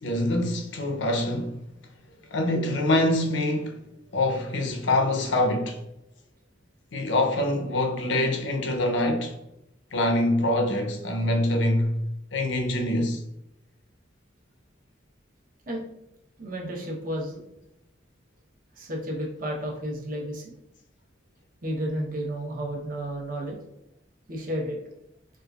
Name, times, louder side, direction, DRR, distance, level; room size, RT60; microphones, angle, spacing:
voice 1, 0.0-1.6 2.3-3.8 4.1-5.8 6.9-9.4 9.9-12.0 12.3-13.2, left 1 dB, 75° left, 0.6 m, -25 dB
voice 2, 16.4-17.4 18.8-20.5 21.6-23.6 24.3-24.8, right 1 dB, 50° right, 0.9 m, -32 dB
4.4 x 2.4 x 2.4 m
head